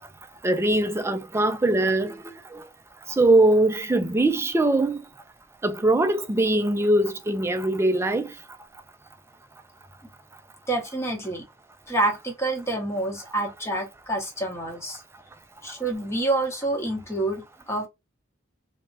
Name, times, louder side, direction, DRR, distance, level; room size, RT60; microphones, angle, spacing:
voice 1, 0.4-2.2 2.5-2.6 3.2-5.0 5.6-8.3, right 2 dB, 15° right, 0.3 m, -21 dB
voice 2, 10.7-11.4 11.9-15.0 15.6-17.9, right 2 dB, 15° left, 1.0 m, -27 dB
3.3 x 2.1 x 2.7 m
head